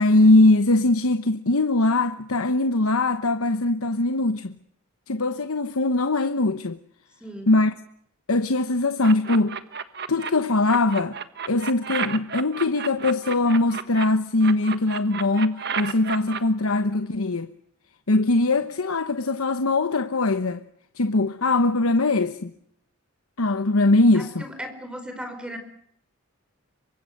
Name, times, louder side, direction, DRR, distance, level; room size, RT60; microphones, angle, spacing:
voice 1, 0.0-4.6 5.1-6.8 7.5-7.7 8.3-9.6 10.1-11.2 11.5-17.5 18.1-20.6 21.0-22.5 23.4-24.4, left 2 dB, 80° left, 1.1 m, -21 dB
voice 2, 7.2-7.5 24.1-25.6, equal, 5° right, 4.6 m, -36 dB
sound 1, 9.0-10.3 10.6-14.0 14.4-16.4, right 7 dB, 50° right, 1.5 m, -31 dB
27.0 x 24.5 x 6.7 m
head